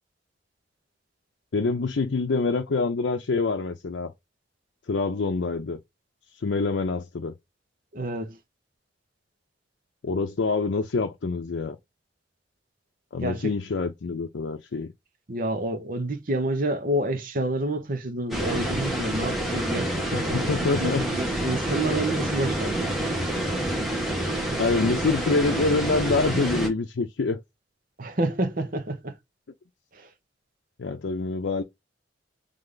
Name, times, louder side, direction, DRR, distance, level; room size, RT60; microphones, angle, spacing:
voice 1, 1.5-4.1 4.9-5.8 6.3-7.3 10.0-11.8 13.1-14.9 20.1-21.1 24.6-27.4 30.8-31.6, left 3 dB, 85° left, 0.5 m, -26 dB
voice 2, 7.9-8.4 13.2-13.5 15.3-23.2 28.0-29.1 29.9-30.1, right 1 dB, 50° right, 0.9 m, -29 dB
sound 1, 18.3-26.7, right 1 dB, ahead, 1.3 m, -27 dB
3.4 x 3.3 x 3.8 m
head